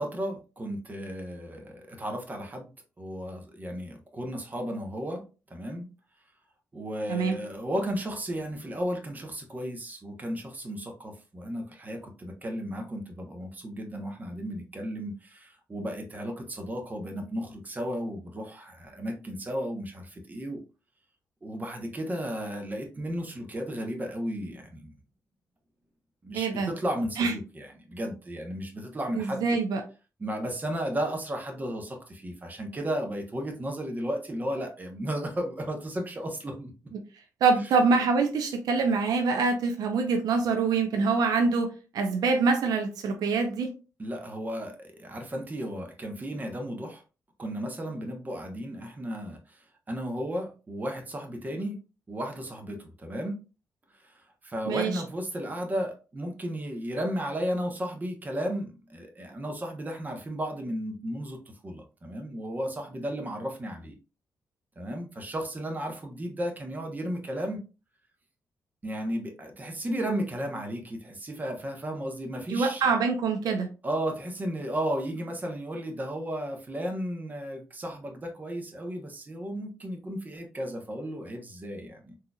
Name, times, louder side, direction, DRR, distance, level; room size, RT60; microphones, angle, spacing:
voice 1, 0.0-2.7 3.0-5.2 5.5-5.9 6.7-20.6 21.4-24.9 26.2-29.6 30.2-36.7 44.0-47.0 47.4-49.6 49.9-51.8 52.1-53.4 54.0-63.9 64.8-67.6 68.8-72.8 73.8-82.2, equal, 25° right, 3 dB, 1.0 m, -34 dB
voice 2, 26.3-26.7 27.2-27.3 29.2-29.8 37.4-41.7 41.9-43.7 54.7-55.0 72.5-73.7, right 4 dB, 80° right, 4 dB, 0.6 m, -25 dB
3.9 x 2.8 x 2.3 m, 0.32 s
cardioid pair, 85°, 7 cm